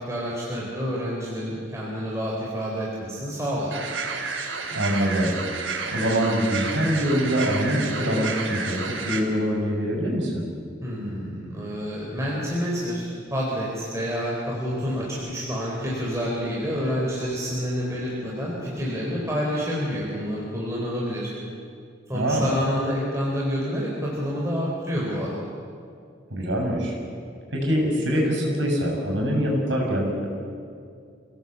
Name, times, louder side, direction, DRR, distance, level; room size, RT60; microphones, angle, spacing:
voice 1, 0.0-3.8 10.8-21.3 22.1-25.4, equal, 15° right, -5 dB, 4.3 m, -28 dB
sound 1, 3.7-9.2, right 4 dB, 90° right, 3.1 m, -31 dB
voice 2, 4.7-5.3 5.9-10.4 22.1-22.5 26.3-26.9 27.5-30.3, equal, 70° right, 0 dB, 6.7 m, -24 dB
28.0 x 16.5 x 8.2 m, 2.3 s
head